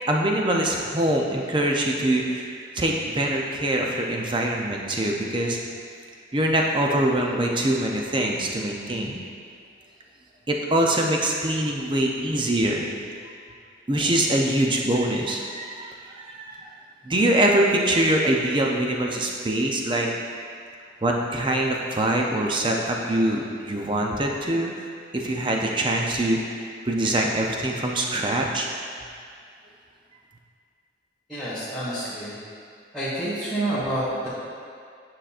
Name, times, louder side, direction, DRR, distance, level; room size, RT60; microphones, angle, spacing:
voice 1, 0.0-2.5 2.7-5.6 6.3-9.2 10.5-12.9 13.9-16.7 17.0-20.1 21.0-28.7, right 1 dB, 25° right, 0 dB, 0.6 m, -24 dB
voice 2, 31.3-32.4 32.9-34.3, right 1 dB, ahead, -15 dB, 1.5 m, -28 dB
9.1 x 5.7 x 2.5 m, 2.3 s
head